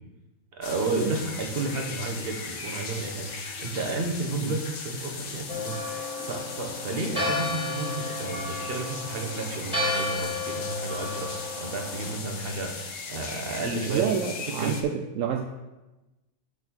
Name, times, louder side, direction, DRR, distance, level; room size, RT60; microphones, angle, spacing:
voice 1, 0.5-14.1 14.6-14.8, right 2 dB, 45° right, 3 dB, 1.3 m, -32 dB
sound 1, 0.6-14.8, left 4 dB, 70° left, 1.3 m, -38 dB
Church bell, 5.5-12.1, left 2 dB, 5° right, 2.0 m, -33 dB
voice 2, 13.9-15.4, right 8 dB, 75° right, 4 dB, 0.9 m, -28 dB
6.1 x 5.3 x 6.1 m, 1.1 s
omnidirectional pair, 1.4 m